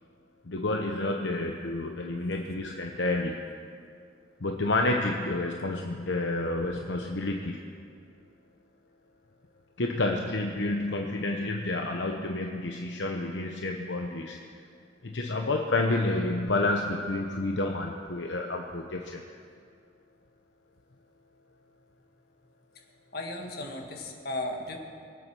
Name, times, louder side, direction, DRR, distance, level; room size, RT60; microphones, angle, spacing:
voice 1, 0.5-3.4 4.4-7.6 9.8-14.4 15.0-19.2, left 2 dB, 75° left, 2 dB, 0.9 m, -29 dB
voice 2, 23.1-24.8, left 1 dB, 55° left, 2 dB, 1.9 m, -35 dB
23.0 x 8.4 x 6.2 m, 2.3 s
head